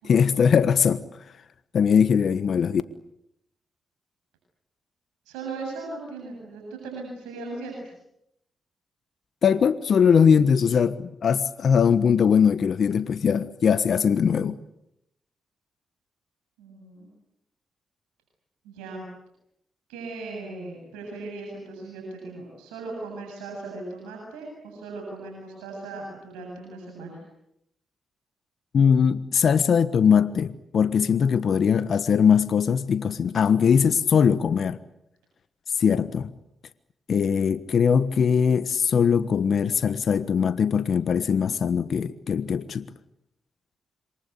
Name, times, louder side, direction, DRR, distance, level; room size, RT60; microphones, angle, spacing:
voice 1, 0.0-1.0 1.7-2.8 9.4-14.6 28.7-34.8 35.8-36.3 37.1-42.9, left 7 dB, 65° left, 1.3 m, -21 dB
voice 2, 5.2-7.9 16.6-17.1 18.6-19.0 19.9-27.2, right 3 dB, 90° right, 7.8 m, -38 dB
27.0 x 24.5 x 8.4 m
hypercardioid pair, 45°, 0 cm